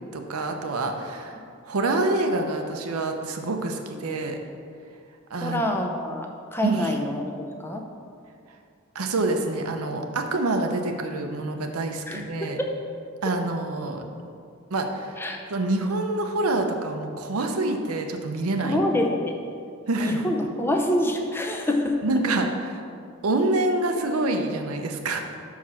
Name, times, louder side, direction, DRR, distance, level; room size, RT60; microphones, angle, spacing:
voice 1, 0.1-1.4 1.6-4.4 5.3-5.7 6.6-6.9 8.9-12.6 13.2-14.0 14.7-15.2 15.5-18.8 19.9-20.2 22.0-22.8 23.2-25.2, right 2 dB, 80° right, 5 dB, 0.7 m, -26 dB
voice 2, 5.4-7.8 12.1-12.5 15.2-15.4 18.6-19.3 20.0-22.2, left 1 dB, 10° left, 2 dB, 0.5 m, -26 dB
6.1 x 4.7 x 5.7 m, 2.3 s
head